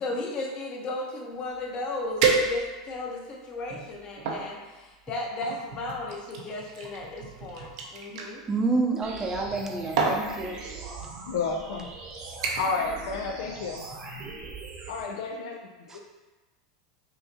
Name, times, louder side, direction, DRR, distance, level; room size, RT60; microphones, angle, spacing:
voice 1, 0.0-8.4, left 2 dB, 35° left, 0 dB, 0.9 m, -35 dB
sound 1, 1.5-1.6 2.2-3.0 3.6-4.4 5.4-8.3 9.4-9.6 10.0-10.3 11.1-11.3 11.7-12.0 12.4-12.8 13.2-13.5 13.9-14.0, right 4 dB, 70° right, 0.7 m, -29 dB
voice 2, 8.5-10.6, right 3 dB, 20° right, 1 dB, 0.7 m, -28 dB
sound 2, 9.0-15.0, right 3 dB, 45° right, 1.0 m, -41 dB
voice 3, 11.3-11.9 12.6-13.8 14.9-16.0, left 4 dB, 70° left, 1 dB, 0.4 m, -31 dB
5.6 x 2.7 x 2.8 m, 1.2 s
hypercardioid pair, 105°, 3 cm